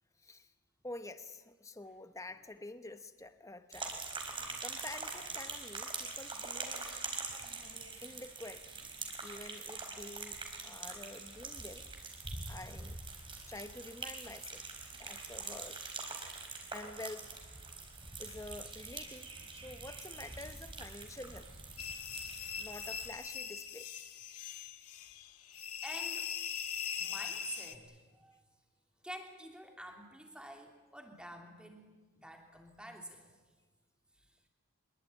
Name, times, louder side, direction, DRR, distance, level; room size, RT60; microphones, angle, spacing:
voice 1, 0.8-4.0 4.6-6.8 8.0-8.7 9.2-10.4 10.6-11.9 12.5-13.0 13.5-14.7 15.0-15.8 16.7-17.6 18.2-21.5 22.6-23.9, left 2 dB, 15° left, 10 dB, 1.1 m, -48 dB
sound 1, 3.7-23.1, right 4 dB, 20° right, 4.2 m, -44 dB
sound 2, 21.8-27.7, left 7 dB, 90° left, 1.8 m, -41 dB
voice 2, 22.2-22.6 25.5-26.3 27.0-28.4 29.0-33.4 34.2-34.3, right 1 dB, 5° right, 2 dB, 3.2 m, -49 dB
25.0 x 22.0 x 9.2 m, 1.3 s
head